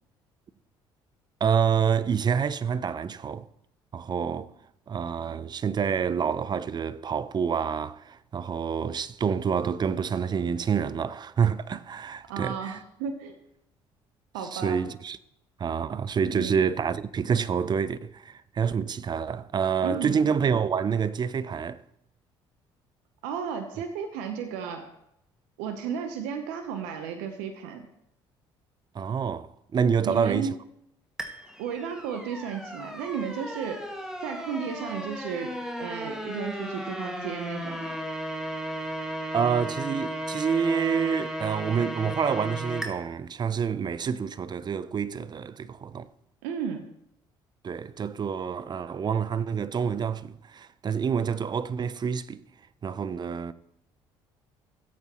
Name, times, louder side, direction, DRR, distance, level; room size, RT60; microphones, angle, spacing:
voice 1, 1.4-3.5 3.9-4.5 4.9-12.8 14.5-15.2 15.6-21.8 28.9-30.5 39.3-46.1 47.6-52.4 52.8-53.5, right 7 dB, 40° right, 0.6 m, -27 dB
voice 2, 12.3-13.3 14.3-14.8 16.3-16.6 19.8-20.3 23.2-24.9 25.6-27.9 30.0-30.5 31.6-33.8 34.2-37.9 46.4-46.9, right 7 dB, 85° right, 0.9 m, -34 dB
sound 1, 31.2-42.9, equal, 5° right, 1.9 m, -35 dB
17.0 x 8.3 x 3.0 m
supercardioid pair, 65°, 12 cm